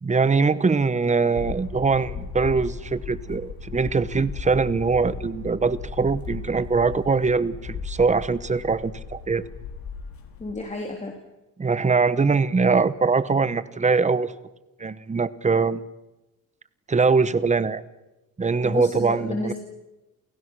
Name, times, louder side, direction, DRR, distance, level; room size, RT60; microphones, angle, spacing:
voice 1, 0.0-9.5 11.6-14.3 14.8-15.8 16.9-17.8 18.4-19.5, right 4 dB, 20° right, 15 dB, 1.0 m, -22 dB
sound 1, 1.4-10.5, left 5 dB, 85° left, 4.8 m, -36 dB
voice 2, 10.4-11.1 18.6-19.5, left 2 dB, 20° left, 1 dB, 3.0 m, -31 dB
29.0 x 29.0 x 6.2 m, 1.0 s
wide cardioid pair, 170°, 35 cm